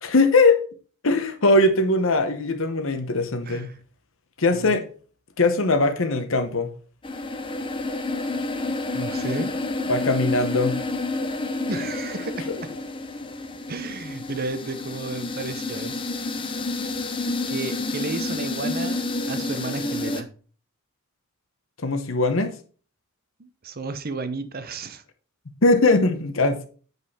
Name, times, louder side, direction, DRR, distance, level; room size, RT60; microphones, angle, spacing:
voice 1, 0.0-0.6 1.0-3.7 4.4-4.8 5.4-6.7 9.9-10.8 21.8-22.5 25.6-26.7, left 2 dB, 65° left, 1.0 m, -20 dB
voice 2, 3.5-3.8 4.5-4.8 8.9-9.5 11.7-12.7 13.7-16.0 17.5-20.3 23.4-25.0, right 3 dB, 45° right, 0.8 m, -33 dB
sound 1, 7.0-20.2, left 2 dB, 25° left, 0.7 m, -29 dB
7.8 x 5.4 x 4.1 m
head